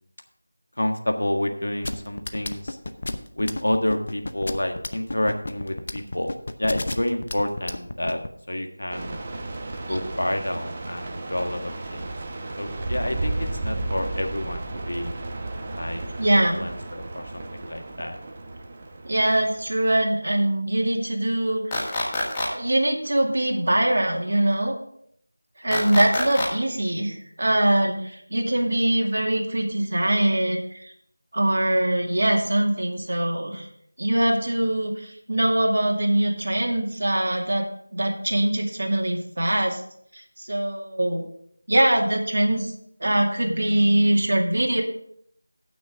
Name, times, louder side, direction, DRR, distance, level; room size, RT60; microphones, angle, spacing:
voice 1, 0.8-2.8 3.4-6.3 6.6-8.2 8.5-9.2 9.8-12.1 12.6-15.1 15.7-16.0 16.3-18.2, left 1 dB, 75° left, 5 dB, 1.5 m, -29 dB
sound 1, 1.8-8.3, left 2 dB, 50° left, 0.7 m, -31 dB
sound 2, 8.9-19.8, right 2 dB, 25° right, 1.0 m, -33 dB
voice 2, 16.2-16.7 19.0-21.9 22.5-24.8 25.6-30.6 31.3-33.7 34.0-37.7 37.9-39.8 40.1-41.2 41.7-42.7 43.0-44.8, right 1 dB, 55° right, 0 dB, 2.3 m, -23 dB
sound 3, 21.7-22.5 25.7-26.5, left 2 dB, 10° left, 1.5 m, -26 dB
16.0 x 6.2 x 3.6 m, 0.68 s
figure-of-eight pair, 170°, 0 cm